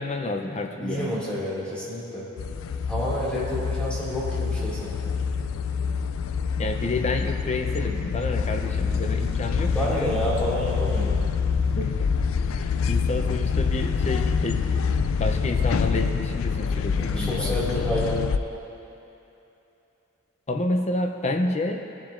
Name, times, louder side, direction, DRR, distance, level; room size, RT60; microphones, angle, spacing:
voice 1, 0.0-1.2 6.6-10.2 11.7-12.1 12.5-14.8 15.2-17.9 20.5-21.8, left 2 dB, 35° left, 5 dB, 0.6 m, -29 dB
voice 2, 0.8-2.3 2.9-5.0 9.1-11.1 17.0-18.2, equal, 5° left, -8 dB, 2.4 m, -29 dB
sound 1, 2.4-18.4, left 5 dB, 85° left, 0.4 m, -26 dB
18.5 x 7.2 x 2.6 m, 2.9 s
head